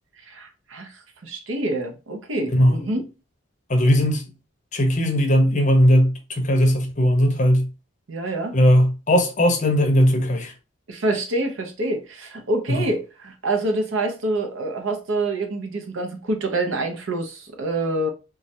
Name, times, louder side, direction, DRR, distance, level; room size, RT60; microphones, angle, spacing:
voice 1, 0.3-3.0 8.1-8.6 10.9-18.1, right 2 dB, 80° right, 0.7 m, -26 dB
voice 2, 3.7-4.2 4.7-7.7 8.5-10.5 12.7-12.8, equal, 40° left, 0.6 m, -18 dB
3.1 x 2.3 x 2.7 m
head